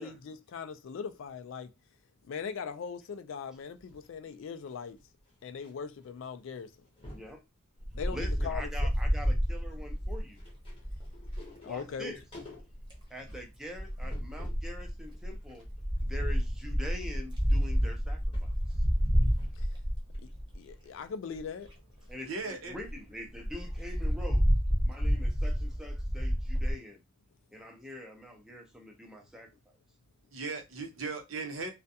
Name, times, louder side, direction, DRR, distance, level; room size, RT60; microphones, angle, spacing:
voice 1, 0.0-1.7 2.2-5.0 5.4-6.7 7.9-8.7 11.6-12.1 19.6-19.7 20.2-20.3 20.5-21.7, left 6 dB, 65° left, 0.3 m, -40 dB
sound 1, 3.6-5.7 6.0-6.3 6.5-7.4 7.9-8.6 8.9-14.7 15.1-19.8 20.1-20.2, left 1 dB, 25° left, 0.8 m, -51 dB
voice 2, 7.1-7.4 8.1-10.4 11.6-12.2 13.1-15.7 16.0-18.8 22.1-24.4 24.8-27.0 27.5-29.8, left 1 dB, 5° right, 0.5 m, -44 dB
Wind, 7.8-11.5 12.6-13.0 13.7-20.7 21.3-21.4 21.7-21.8 22.1-22.2 22.5-22.6 22.8-22.9 23.4-26.7, equal, 20° right, 0.9 m, -30 dB
voice 3, 22.3-22.7 30.3-31.7, right 4 dB, 70° right, 0.7 m, -37 dB
2.4 x 2.2 x 2.6 m
head